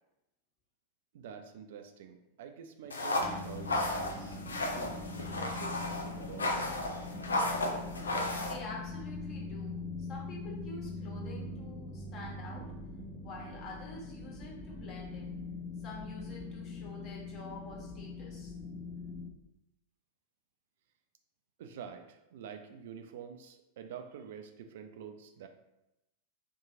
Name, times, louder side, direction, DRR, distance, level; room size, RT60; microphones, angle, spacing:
voice 1, 1.1-5.1 5.5-6.7 21.6-25.5, right 7 dB, 55° right, 6 dB, 0.3 m, -47 dB
sound 1, 2.9-8.5, left 1 dB, 75° left, 0.4 m, -34 dB
sound 2, 3.2-19.3, left 3 dB, 5° left, 0.4 m, -42 dB
voice 2, 8.4-12.7 13.2-15.3 15.8-18.5, left 2 dB, 35° left, -3 dB, 1.2 m, -47 dB
2.8 x 2.6 x 3.7 m, 0.92 s
figure-of-eight pair, 90°, 0 cm